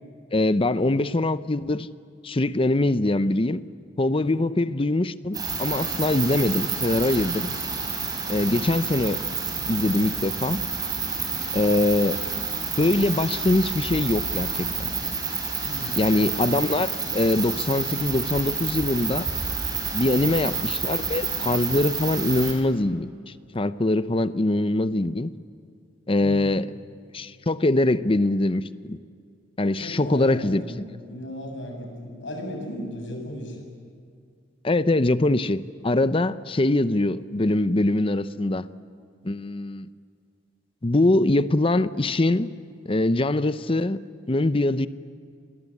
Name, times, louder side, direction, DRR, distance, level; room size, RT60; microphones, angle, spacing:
voice 1, 0.3-1.9 2.2-3.6 4.0-7.5 8.3-9.2 9.7-10.6 11.5-12.2 12.8-14.7 16.0-19.3 19.9-23.1 23.5-25.3 26.1-26.7 27.1-29.0 29.6-30.6 34.6-38.7 39.2-39.9 40.8-42.5 42.9-44.0 44.3-44.9, left 2 dB, 30° left, 0.7 m, -23 dB
voice 2, 4.2-4.5 15.6-16.0 26.2-26.6 29.8-33.6, equal, 75° left, 7.0 m, -36 dB
sound 1, 5.3-22.5, right 5 dB, 20° right, 5.0 m, -29 dB
29.0 x 22.0 x 8.4 m
head